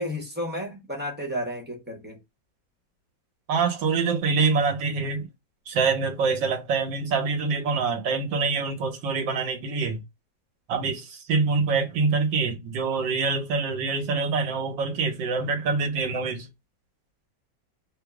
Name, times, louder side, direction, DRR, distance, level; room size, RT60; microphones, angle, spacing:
voice 1, 0.0-2.2, equal, 10° right, 0.5 m, -32 dB
voice 2, 3.5-5.3 5.7-10.0 10.7-16.5, right 4 dB, 85° right, 1.7 m, -25 dB
3.5 x 2.0 x 3.4 m
omnidirectional pair, 2.0 m